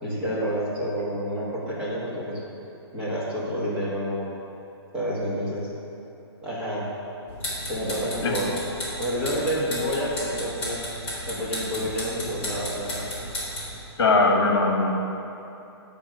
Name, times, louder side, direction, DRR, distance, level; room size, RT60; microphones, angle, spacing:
voice 1, 0.0-2.4 2.9-4.3 4.9-5.7 6.4-6.9 7.7-8.5 9.0-10.8 11.3-13.1, equal, 5° right, -9 dB, 1.3 m, -29 dB
sound 1, 7.3-13.8, left 1 dB, 10° left, 2.3 m, -34 dB
voice 2, 14.0-14.9, left 3 dB, 60° left, 1 dB, 1.5 m, -20 dB
8.5 x 5.3 x 6.4 m, 2.8 s
hypercardioid pair, 175°, 14 cm